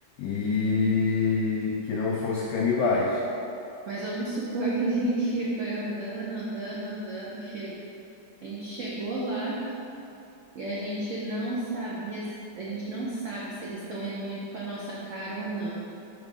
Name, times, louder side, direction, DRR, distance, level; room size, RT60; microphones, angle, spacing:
voice 1, 0.2-3.2, left 4 dB, 75° left, -2 dB, 0.9 m, -25 dB
voice 2, 3.9-7.7 8.4-9.6 10.5-12.3 12.5-15.7, right 2 dB, 90° right, -6 dB, 0.6 m, -32 dB
5.0 x 3.6 x 5.2 m, 2.7 s
omnidirectional pair, 2.3 m